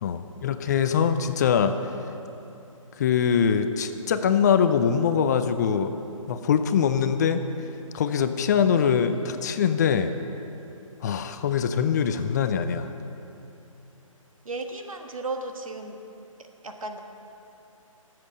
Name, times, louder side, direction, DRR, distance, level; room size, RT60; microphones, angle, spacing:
voice 1, 0.0-1.7 3.0-6.0 6.3-7.4 7.9-10.1 11.0-12.9, left 7 dB, 30° left, 9 dB, 0.5 m, -23 dB
voice 2, 14.4-16.0 16.6-17.0, right 3 dB, 75° right, 4 dB, 1.5 m, -34 dB
20.0 x 7.7 x 5.4 m, 2.9 s
figure-of-eight pair, 140°, 18 cm